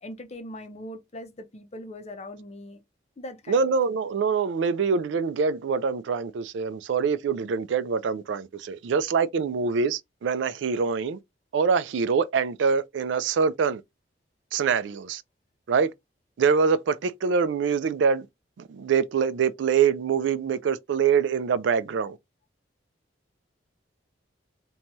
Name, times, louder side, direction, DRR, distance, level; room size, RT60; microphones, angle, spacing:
voice 1, 0.0-2.8 3.2-3.7, left 1 dB, 35° left, 0.6 m, -40 dB
voice 2, 3.5-11.2 11.5-13.8 14.5-15.2 15.7-15.9 16.4-18.3 18.6-22.2, right 6 dB, 80° right, 0.3 m, -24 dB
2.7 x 2.2 x 2.9 m
head